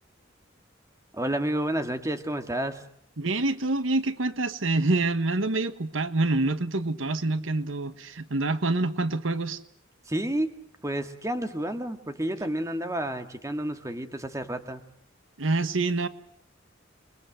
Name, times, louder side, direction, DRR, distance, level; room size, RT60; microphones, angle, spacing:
voice 1, 1.1-2.9 10.1-10.6 10.8-14.8, right 1 dB, 15° right, 7 dB, 2.0 m, -30 dB
voice 2, 3.2-9.6 15.4-16.1, right 2 dB, 80° right, 11 dB, 1.4 m, -26 dB
28.5 x 22.5 x 7.8 m, 0.62 s
head